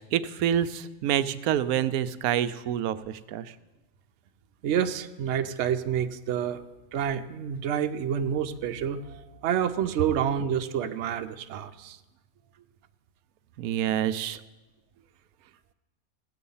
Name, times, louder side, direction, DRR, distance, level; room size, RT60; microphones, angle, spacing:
voice 1, 0.1-3.0 3.3-3.4 13.6-14.4, right 10 dB, 85° right, 14 dB, 1.0 m, -27 dB
voice 2, 4.6-6.6 6.9-12.0, right 8 dB, 60° right, 8 dB, 0.9 m, -28 dB
16.5 x 7.7 x 5.5 m, 1.1 s
omnidirectional pair, 1.5 m